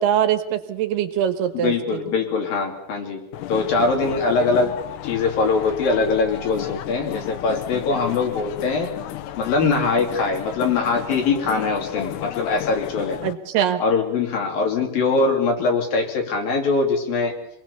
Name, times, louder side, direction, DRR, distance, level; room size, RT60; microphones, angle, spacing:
voice 1, 0.0-2.0 13.2-13.8, right 10 dB, 75° right, 9 dB, 3.4 m, -22 dB
voice 2, 1.5-3.2 3.5-4.7 5.0-8.9 9.4-13.2 13.8-17.3, left 4 dB, 60° left, 2 dB, 4.6 m, -22 dB
sound 1, 3.3-13.3, left 12 dB, 80° left, 3.1 m, -33 dB
26.0 x 20.0 x 7.1 m, 0.75 s
omnidirectional pair, 4.7 m